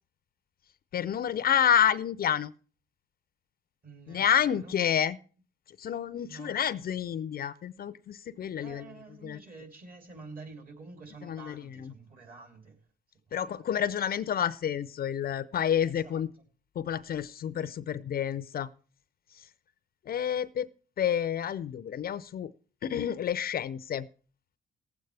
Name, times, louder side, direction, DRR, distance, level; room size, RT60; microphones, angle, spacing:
voice 1, 0.9-2.5 4.1-5.2 5.8-8.9 9.2-9.4 11.3-11.9 13.3-16.3 16.8-18.7 20.1-20.7 21.0-22.5 22.8-24.1, left 9 dB, 50° left, 15 dB, 0.5 m, -29 dB
voice 2, 3.8-4.8 6.2-6.6 8.6-12.8 15.8-16.2, right 3 dB, 45° right, 4 dB, 3.1 m, -48 dB
18.5 x 8.0 x 3.3 m, 0.40 s
cardioid pair, 90°, 20 cm